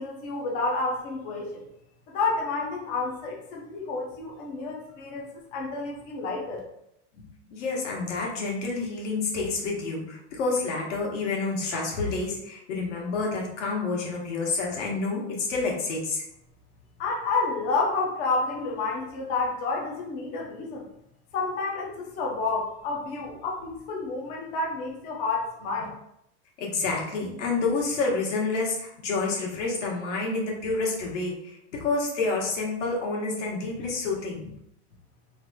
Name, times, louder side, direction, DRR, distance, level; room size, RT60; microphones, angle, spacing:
voice 1, 0.0-1.6 2.1-6.6 17.0-20.9 21.3-25.9, left 3 dB, 25° left, -2 dB, 0.5 m, -30 dB
voice 2, 7.5-16.2 26.6-34.5, left 3 dB, 75° left, -2 dB, 1.3 m, -29 dB
3.2 x 2.4 x 4.0 m, 0.78 s
supercardioid pair, 165°, 36 cm